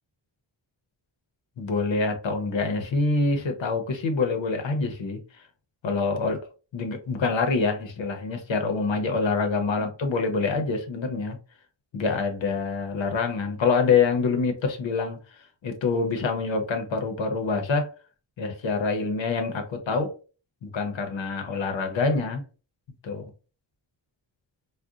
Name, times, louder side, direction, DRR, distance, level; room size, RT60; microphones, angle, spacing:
voice 1, 1.6-5.2 5.8-6.4 6.7-11.4 11.9-15.2 15.6-17.9 18.4-20.1 20.6-22.4 23.0-23.3, left 4 dB, 80° left, 0.7 m, -26 dB
3.7 x 2.1 x 2.3 m
wide cardioid pair, 135°, 45 cm